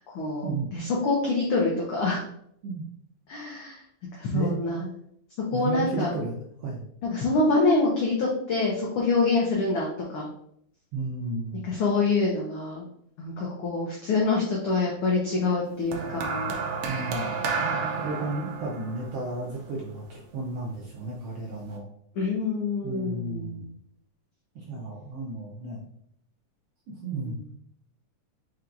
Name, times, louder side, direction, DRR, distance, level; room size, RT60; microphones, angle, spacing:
voice 1, 0.0-2.2 3.3-3.8 4.2-4.9 5.5-6.1 7.0-10.3 11.7-12.8 13.2-16.5 17.6-17.9 22.2-23.6 27.1-27.4, left 3 dB, 80° left, -3 dB, 1.2 m, -26 dB
voice 2, 5.5-6.9 10.9-11.7 16.8-17.3 17.7-21.9 22.8-23.7 24.5-25.9 27.0-27.4, right 2 dB, 70° right, -4 dB, 1.5 m, -33 dB
sound 1, 15.9-20.3 21.3-21.5, right 5 dB, 90° right, 1.4 m, -31 dB
4.6 x 4.5 x 2.5 m, 0.70 s
omnidirectional pair, 3.6 m